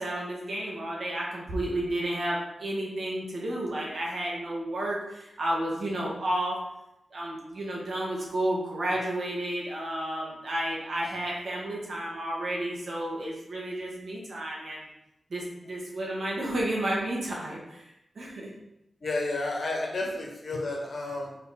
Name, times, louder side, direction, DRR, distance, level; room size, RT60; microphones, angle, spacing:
voice 1, 0.0-6.6 7.1-14.8 15.3-17.9 18.2-18.5, right 1 dB, 60° right, -3 dB, 1.9 m, -31 dB
voice 2, 19.0-21.4, left 2 dB, 60° left, 0 dB, 1.5 m, -31 dB
5.3 x 4.4 x 4.2 m, 0.87 s
wide cardioid pair, 105°, 0 cm